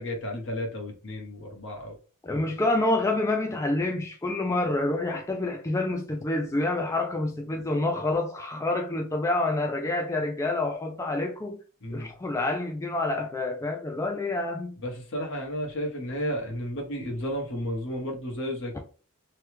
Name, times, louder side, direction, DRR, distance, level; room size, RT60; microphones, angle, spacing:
voice 1, 0.0-2.0 11.8-12.1 14.8-18.8, equal, 60° left, 1.1 m, -33 dB
voice 2, 2.2-11.6 11.9-14.7, left 2 dB, 15° left, 0.3 m, -27 dB
3.1 x 2.2 x 3.1 m
head